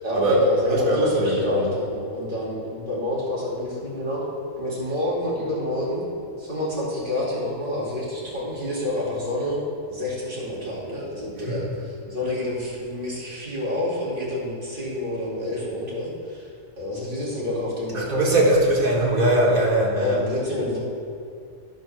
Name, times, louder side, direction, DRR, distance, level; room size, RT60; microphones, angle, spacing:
voice 1, 0.0-4.2 4.6-6.1 6.4-9.6 9.9-16.5 16.8-18.6 19.9-20.8, left 1 dB, 40° right, -7 dB, 2.5 m, -28 dB
voice 2, 1.2-1.6 18.0-20.2, right 1 dB, 75° right, -4 dB, 2.2 m, -20 dB
10.5 x 4.7 x 5.9 m, 2.4 s
omnidirectional pair, 1.5 m